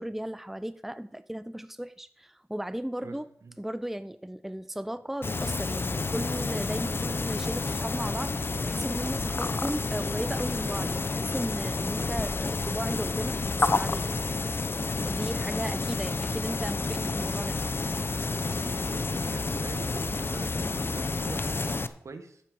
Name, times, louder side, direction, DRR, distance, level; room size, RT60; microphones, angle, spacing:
voice 1, 0.0-3.3 3.6-14.0 15.0-17.6, right 1 dB, 5° right, 14 dB, 0.6 m, -35 dB
sound 1, 5.2-21.9, left 3 dB, 40° left, 0.8 m, -30 dB
voice 2, 18.5-22.4, right 4 dB, 65° right, 9 dB, 1.5 m, -44 dB
12.0 x 9.2 x 5.1 m, 0.64 s
cardioid pair, 45°, 6 cm